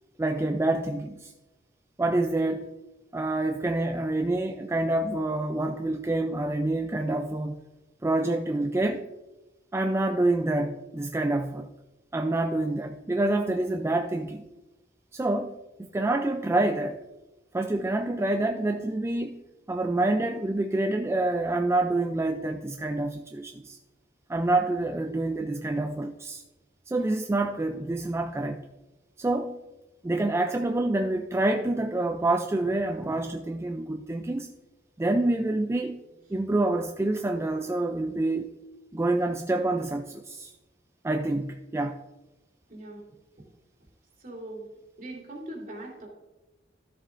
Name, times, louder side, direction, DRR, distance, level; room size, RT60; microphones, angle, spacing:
voice 1, 0.2-1.3 2.0-2.7 3.1-7.6 8.0-9.0 9.7-11.7 12.1-14.4 15.1-15.5 15.9-17.0 17.5-19.4 19.7-23.8 24.3-26.4 26.9-28.7 29.2-29.6 30.0-34.5 35.0-36.0 36.3-38.5 38.9-40.5 41.0-42.0, right 2 dB, 15° right, 0.3 m, -27 dB
voice 2, 42.7-43.0 44.2-44.7 45.0-46.1, right 1 dB, 50° right, 2.6 m, -41 dB
13.0 x 7.4 x 2.5 m
head